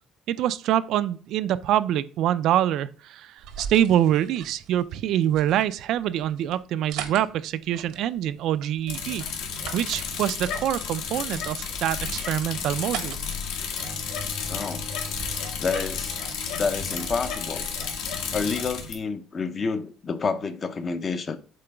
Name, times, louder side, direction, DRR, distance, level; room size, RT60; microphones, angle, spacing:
voice 1, 0.3-9.2 9.7-13.2, right 11 dB, 55° right, 0.3 m, -25 dB
sound 1, 3.4-17.7, right 8 dB, 70° right, 0.8 m, -43 dB
Bicycle, 8.9-18.9, left 6 dB, 75° left, 1.5 m, -32 dB
Bowed string instrument, 13.8-18.8, left 4 dB, 50° left, 1.6 m, -44 dB
voice 2, 14.5-14.8 15.6-16.3 16.6-17.7 18.3-21.4, left 4 dB, 25° left, 0.5 m, -29 dB
7.5 x 3.9 x 3.3 m
cardioid pair, 180°, 0 cm